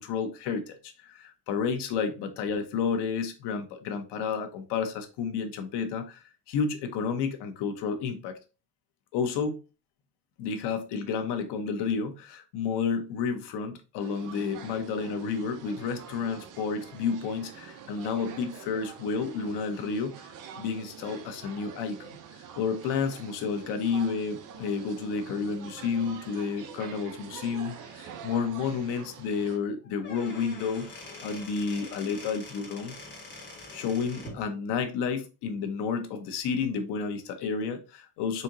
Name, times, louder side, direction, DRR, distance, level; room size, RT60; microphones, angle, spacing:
voice 1, 0.0-8.4 9.1-9.6 10.4-20.1 20.6-30.9 31.2-33.0 33.7-38.4, left 5 dB, 85° left, 1.0 m, -31 dB
sound 1, 14.0-29.6, right 7 dB, 50° right, 0.7 m, -46 dB
Squeak / Wood, 29.8-34.4, left 2 dB, 25° left, 1.6 m, -44 dB
4.3 x 2.8 x 3.8 m
cardioid pair, 165°, 40 cm